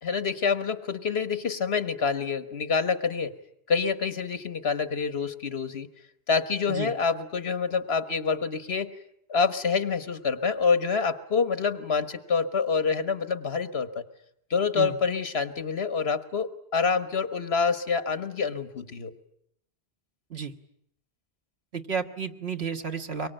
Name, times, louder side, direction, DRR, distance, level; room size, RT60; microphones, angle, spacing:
voice 1, 0.0-3.3 3.7-5.9 6.3-8.9 9.3-14.0 14.5-19.1, left 5 dB, 70° left, 11 dB, 1.6 m, -27 dB
voice 2, 21.7-23.3, right 6 dB, 70° right, 5 dB, 1.8 m, -32 dB
24.0 x 22.5 x 9.0 m, 0.74 s
omnidirectional pair, 1.1 m